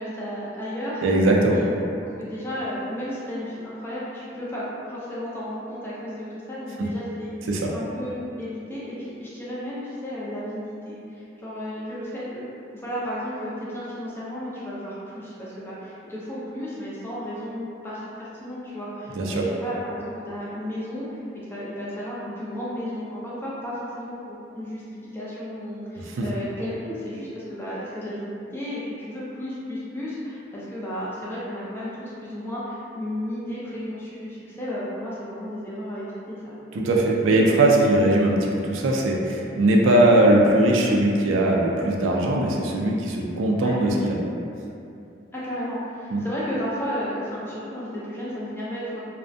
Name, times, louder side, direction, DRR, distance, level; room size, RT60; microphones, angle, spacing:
voice 1, 0.0-1.0 1.5-1.6 2.2-7.3 7.7-12.5 12.7-36.6 43.6-43.7 45.3-49.0, equal, 10° left, -9 dB, 0.4 m, -33 dB
voice 2, 1.0-1.6 6.8-6.9 7.5-7.7 19.2-19.5 26.0-26.3 36.7-44.2 46.1-46.3, right 1 dB, 85° right, -1 dB, 0.3 m, -20 dB
2.4 x 2.1 x 2.5 m, 2.7 s
head